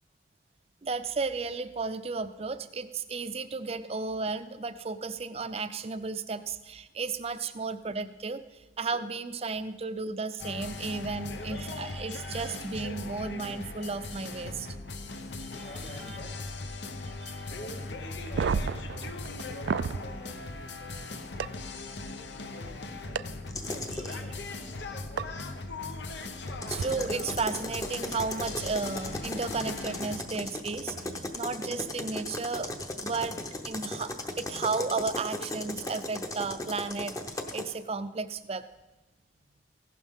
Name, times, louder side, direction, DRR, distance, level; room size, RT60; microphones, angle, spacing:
voice 1, 0.8-8.4 8.8-14.7 15.4-15.5 17.2-17.4 24.1-24.2 26.7-38.7, right 4 dB, 35° right, 11 dB, 0.5 m, -34 dB
sound 1, 10.4-30.2, left 3 dB, 80° left, 0.9 m, -39 dB
voice 2, 15.5-16.5 17.5-21.6 22.0-23.2 23.7-25.7, left 1 dB, 65° left, -2 dB, 3.3 m, -50 dB
sound 2, 18.2-20.0 21.4-21.5 23.2-23.3 25.2-25.3 26.7-26.8, right 5 dB, 85° right, 0.4 m, -30 dB
sound 3, 23.5-24.2 26.5-37.7, left 1 dB, 20° left, 0.8 m, -37 dB
15.5 x 11.5 x 3.6 m, 1.1 s
head